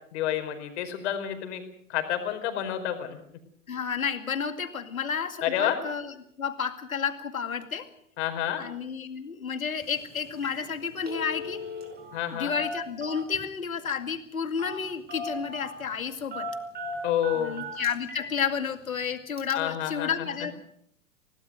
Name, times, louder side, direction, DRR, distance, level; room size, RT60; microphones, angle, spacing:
voice 1, 0.1-1.6 1.9-3.2 5.4-5.8 8.2-8.6 12.1-12.5 17.0-17.6 19.5-20.1, left 11 dB, 55° left, 7 dB, 4.8 m, -29 dB
voice 2, 3.7-7.9 8.6-11.6 12.3-16.5 17.3-20.5, left 6 dB, 80° left, 8 dB, 2.4 m, -31 dB
Telephone, 9.8-10.0 10.3-10.6 10.9-12.2 12.5-13.4 14.6-14.8 15.1-15.8 16.3-18.3 18.7-18.8 19.4-19.5, equal, 25° right, 5.3 m, -37 dB
25.5 x 18.0 x 6.4 m, 0.68 s
hypercardioid pair, 110°, 41 cm